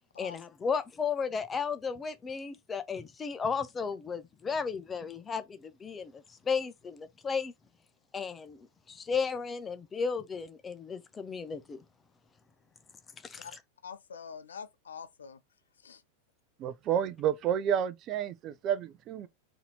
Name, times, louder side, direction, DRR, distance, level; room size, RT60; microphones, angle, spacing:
voice 1, 0.2-7.5 8.1-11.8 13.2-13.5, left 5 dB, 20° left, 0.7 m, -34 dB
voice 2, 13.8-15.4 15.8-16.0, left 6 dB, 70° left, 0.5 m, -45 dB
voice 3, 16.6-19.3, right 9 dB, 35° right, 0.6 m, -30 dB
4.1 x 2.9 x 3.9 m
figure-of-eight pair, 90°, 0 cm